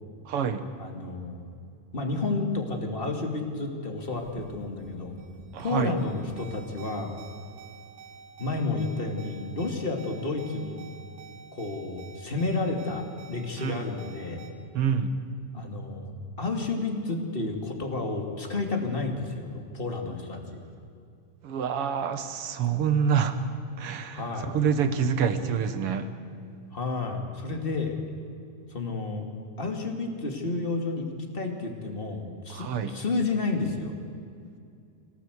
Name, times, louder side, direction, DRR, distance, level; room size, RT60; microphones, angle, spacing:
voice 1, 0.3-0.6 5.5-6.0 13.6-13.8 14.7-15.1 21.4-23.4 23.8-26.1 32.5-33.0, right 7 dB, 55° right, 10 dB, 1.8 m, -27 dB
voice 2, 0.8-1.5 1.9-5.2 5.6-7.2 8.4-10.8 11.5-14.4 15.5-20.6 24.1-24.5 26.7-28.0 28.7-29.3 29.6-33.9, left 3 dB, 20° left, 4 dB, 2.2 m, -31 dB
sound 1, 4.0-14.5, right 5 dB, 75° right, 3.7 m, -48 dB
25.5 x 17.5 x 8.1 m, 2.5 s
omnidirectional pair, 3.7 m